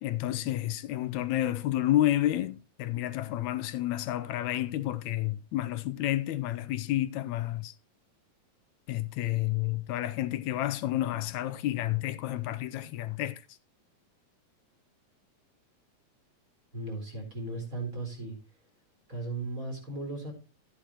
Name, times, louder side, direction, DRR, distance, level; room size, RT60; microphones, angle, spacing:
voice 1, 0.0-7.7 8.9-13.4, left 14 dB, 75° left, 2.0 m, -30 dB
voice 2, 16.7-18.4 19.1-20.3, right 2 dB, 25° right, 4.2 m, -36 dB
12.5 x 10.0 x 3.0 m
omnidirectional pair, 3.5 m